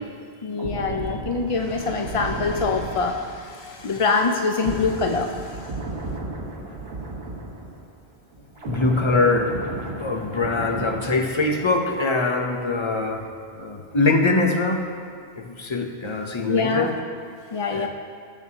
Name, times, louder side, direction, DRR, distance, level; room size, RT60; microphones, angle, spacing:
voice 1, 0.4-5.7 16.5-16.9 17.5-17.9, left 4 dB, 60° left, 4 dB, 0.3 m, -24 dB
sound 1, 0.5-8.1 8.3-12.0 12.3-12.6, right 2 dB, 65° right, 1.7 m, -34 dB
voice 2, 8.6-13.3 13.5-14.8 15.4-16.9 17.7-17.9, left 3 dB, 30° left, 3 dB, 0.6 m, -23 dB
15.5 x 6.9 x 2.8 m, 2.2 s
omnidirectional pair, 1.1 m